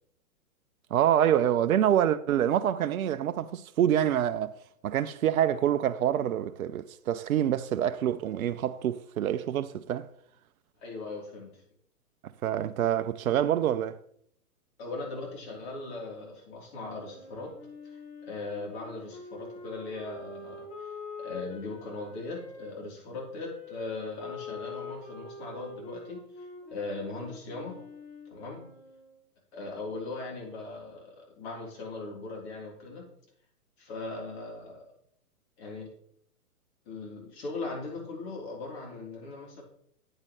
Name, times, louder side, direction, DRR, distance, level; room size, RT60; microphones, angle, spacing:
voice 1, 0.9-4.6 4.8-10.1 12.4-14.0, right 10 dB, 70° right, 0.6 m, -26 dB
voice 2, 10.8-11.5 14.8-17.6 17.8-20.9 21.2-26.5 26.7-27.8 28.3-28.6 29.5-33.1 33.8-34.9 35.6-35.9 36.9-39.6, left 3 dB, 45° left, 3.4 m, -39 dB
Wind instrument woodwind instrument, 16.8-22.7 23.3-29.2, left 3 dB, 25° left, 1.6 m, -45 dB
8.9 x 8.8 x 3.1 m
hypercardioid pair, 125°, 45 cm